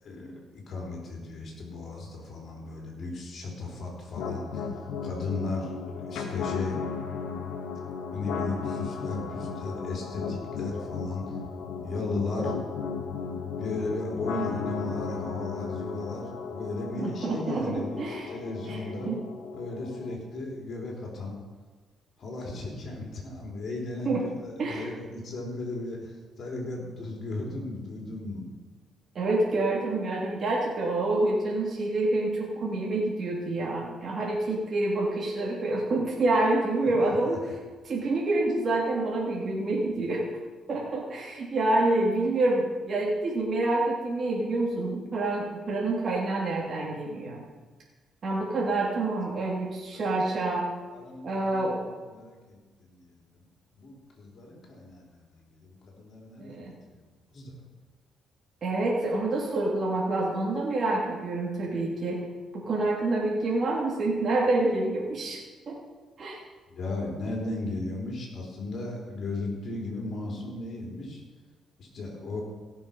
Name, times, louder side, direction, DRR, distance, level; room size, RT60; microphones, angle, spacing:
voice 1, 0.0-4.7 5.0-6.9 8.1-11.4 11.8-12.6 13.6-19.1 19.5-21.4 22.2-28.4 36.8-37.2 49.9-50.3 50.9-53.4 53.8-57.0 57.3-57.7 66.7-71.2 71.8-72.4, left 2 dB, 55° left, -1 dB, 4.2 m, -36 dB
sound 1, 4.2-20.2, left 5 dB, 90° left, 1.2 m, -35 dB
voice 2, 17.0-18.3 18.7-18.8 19.0-19.2 24.0-24.3 24.6-24.9 29.1-37.4 37.8-40.2 40.7-47.4 48.2-50.7 51.2-51.8 56.4-56.7 58.6-62.2 62.5-65.8 66.2-66.4, right 2 dB, 50° right, -4 dB, 2.9 m, -27 dB
16.5 x 7.0 x 5.5 m, 1.3 s
cardioid pair, 90°, 0 cm